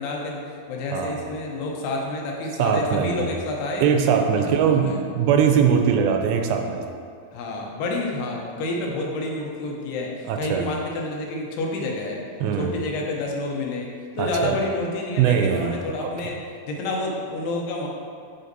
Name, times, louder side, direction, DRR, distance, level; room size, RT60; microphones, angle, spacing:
voice 1, 0.0-3.9 4.3-5.0 7.3-12.2 12.5-17.9, left 2 dB, 90° left, -1 dB, 2.8 m, -29 dB
voice 2, 0.9-1.2 2.6-3.3 3.8-6.8 10.3-10.6 12.4-12.7 14.2-14.6 15.2-16.3, right 7 dB, 85° right, 4 dB, 2.4 m, -21 dB
9.2 x 4.3 x 2.6 m, 2.2 s
omnidirectional pair, 4.4 m